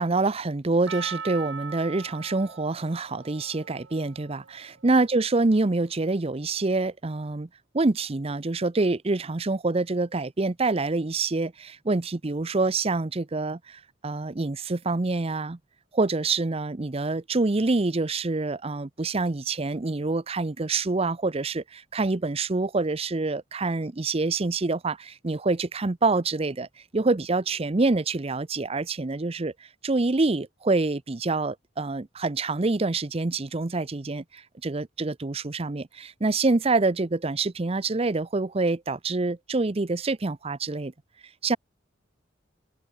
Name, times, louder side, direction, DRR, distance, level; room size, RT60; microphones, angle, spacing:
voice 1, 0.0-7.5 7.7-15.6 15.9-26.7 26.9-29.5 29.8-40.9 41.4-41.6, right 3 dB, 30° right, 0.6 m, -26 dB
Percussion, 0.9-5.2 5.9-6.0, right 6 dB, 75° right, 1.0 m, -40 dB
head